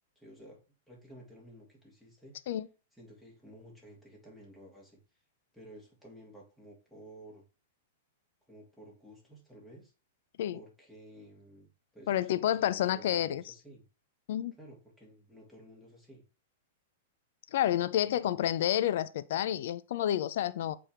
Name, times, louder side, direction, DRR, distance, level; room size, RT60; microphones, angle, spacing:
voice 1, 0.2-0.6 0.9-2.4 2.9-5.0 5.5-7.4 8.5-9.9 10.5-13.8 14.6-16.2 18.0-18.6, right 1 dB, ahead, 2.8 m, -53 dB
voice 2, 12.1-13.4 14.3-14.5 17.5-20.7, left 11 dB, 65° left, 0.5 m, -29 dB
7.6 x 3.5 x 4.7 m
hypercardioid pair, 120°, 0 cm